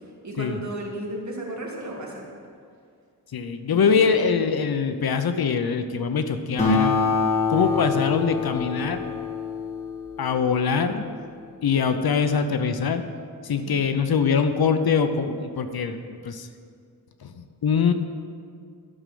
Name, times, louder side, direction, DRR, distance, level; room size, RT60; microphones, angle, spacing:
voice 1, 0.2-2.1 3.7-4.0, right 1 dB, 45° right, -2 dB, 2.2 m, -33 dB
voice 2, 3.3-7.0 7.5-9.1 10.2-11.0 11.6-13.0 13.4-16.5 17.2-17.9, left 6 dB, 70° left, 9 dB, 0.7 m, -23 dB
Acoustic guitar, 6.6-11.4, left 4 dB, 15° left, 2.3 m, -26 dB
12.5 x 6.3 x 6.8 m, 2.2 s
wide cardioid pair, 130°, 39 cm